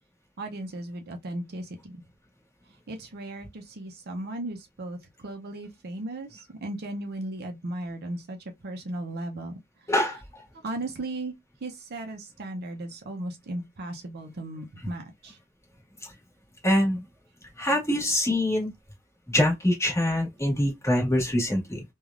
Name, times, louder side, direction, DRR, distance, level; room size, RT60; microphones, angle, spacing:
voice 1, 0.4-2.0 2.9-8.4 8.6-9.6 9.9-10.2 10.6-11.3 11.6-15.4, right 1 dB, 50° right, 0.5 m, -36 dB
voice 2, 9.9-10.2 16.6-17.0 17.6-18.7 19.3-21.8, left 1 dB, 15° left, 1.5 m, -24 dB
3.2 x 2.3 x 2.4 m
head